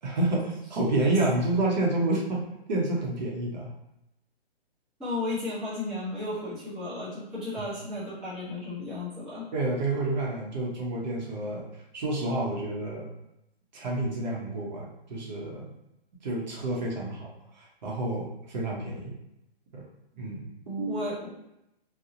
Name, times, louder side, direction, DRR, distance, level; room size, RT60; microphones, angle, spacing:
voice 1, 0.0-2.4 2.7-3.7 9.5-11.7 11.9-13.1 13.7-15.7 16.2-17.3 17.5-19.1 19.7-19.9 20.2-21.0, right 2 dB, 45° right, -3 dB, 0.7 m, -29 dB
voice 2, 5.0-9.5 20.9-21.3, left 2 dB, ahead, -13 dB, 0.6 m, -34 dB
2.7 x 2.0 x 2.6 m, 0.85 s
hypercardioid pair, 140°, 31 cm